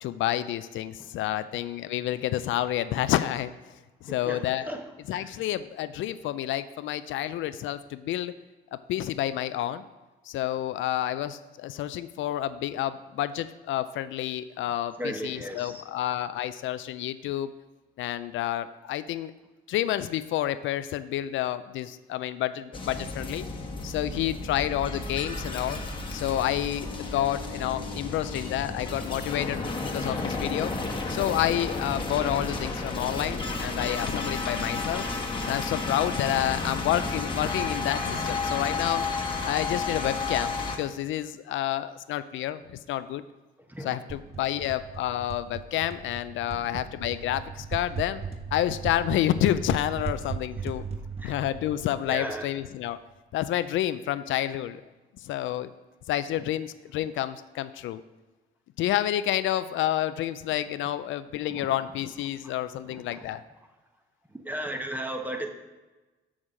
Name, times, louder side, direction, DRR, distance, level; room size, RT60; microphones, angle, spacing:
voice 1, 0.0-3.5 4.0-4.7 5.1-8.3 8.7-9.8 10.3-17.5 18.0-19.3 19.7-23.4 23.8-25.8 26.1-30.7 31.1-35.0 35.4-39.1 39.5-43.2 43.8-48.2 48.5-50.8 51.2-53.0 53.3-54.8 55.2-55.7 56.1-58.0 58.8-63.4, left 12 dB, 75° left, 13 dB, 0.4 m, -29 dB
voice 2, 4.1-4.8 5.1-5.4 15.0-15.8 43.7-44.0 46.5-46.8 51.2-51.4 52.1-52.5 61.5-61.7 62.4-62.5 62.9-63.3 64.3-65.5, right 1 dB, 10° right, 4 dB, 1.0 m, -36 dB
sound 1, 22.7-40.8, left 3 dB, 25° left, 1.2 m, -32 dB
sound 2, 44.1-52.8, right 5 dB, 30° right, 0.8 m, -37 dB
7.2 x 6.4 x 5.0 m, 1.2 s
cardioid pair, 90°, 20 cm